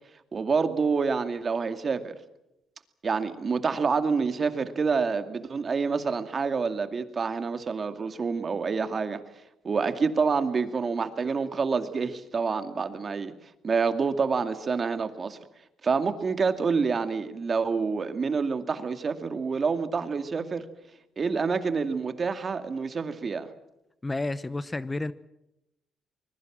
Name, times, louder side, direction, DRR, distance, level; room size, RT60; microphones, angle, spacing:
voice 1, 0.3-2.2 3.0-9.2 9.6-13.3 13.6-15.4 15.8-20.6 21.2-23.5, right 5 dB, 40° right, 2.3 m, -27 dB
voice 2, 24.0-25.1, left 2 dB, 20° left, 0.8 m, -30 dB
24.5 x 21.5 x 7.5 m
cardioid pair, 90°, 0 cm